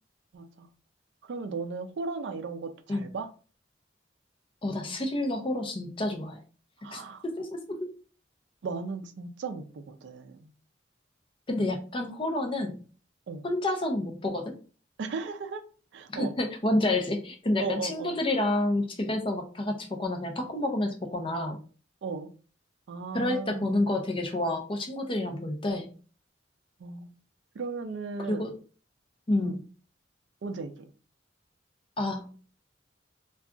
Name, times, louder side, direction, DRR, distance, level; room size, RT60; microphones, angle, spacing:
voice 1, 0.3-0.7 1.2-3.3 6.8-7.2 8.6-10.5 13.3-13.4 15.0-15.6 15.9-16.3 17.6-18.2 22.0-22.3 22.9-23.7 26.8-27.1 27.6-28.5 29.4-29.6 30.4-30.7, right 4 dB, 65° right, 8 dB, 0.4 m, -36 dB
voice 2, 4.6-6.4 6.9-7.0 7.4-7.9 11.5-12.8 13.4-14.5 16.1-21.6 23.1-25.9 28.3-28.5 29.3-29.6 32.0-32.3, left 1 dB, 25° left, 3 dB, 0.5 m, -29 dB
2.3 x 2.3 x 3.7 m, 0.38 s
head